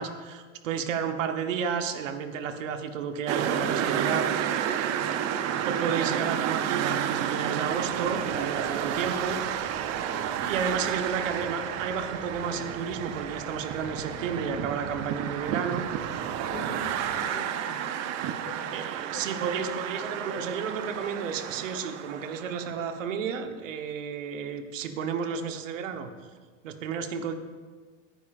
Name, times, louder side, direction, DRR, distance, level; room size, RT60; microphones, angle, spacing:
voice 1, 0.0-4.3 5.2-9.4 10.5-15.9 18.7-26.1 26.6-27.3, right 6 dB, 80° right, 7 dB, 1.3 m, -32 dB
sound 1, 3.3-22.8, right 9 dB, 45° right, 0.9 m, -31 dB
sound 2, 7.7-17.2, right 1 dB, 10° right, 2.6 m, -46 dB
voice 2, 16.4-17.8 18.4-18.7 19.1-20.7, left 3 dB, 35° left, 0 dB, 2.9 m, -43 dB
18.5 x 9.9 x 2.6 m, 1.5 s
hypercardioid pair, 115°, 38 cm